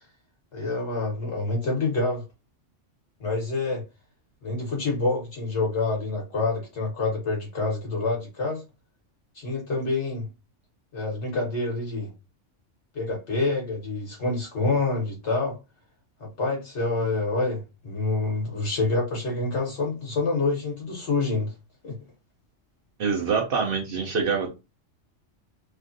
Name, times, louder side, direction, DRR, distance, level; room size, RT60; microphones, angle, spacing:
voice 1, 0.5-2.2 3.2-3.8 4.4-8.6 9.3-10.3 10.9-12.1 12.9-15.6 16.2-21.5 21.8-22.0, left 3 dB, 65° left, 1.6 m, -27 dB
voice 2, 23.0-24.5, right 5 dB, 55° right, 0.7 m, -25 dB
3.3 x 2.4 x 2.5 m
omnidirectional pair, 1.3 m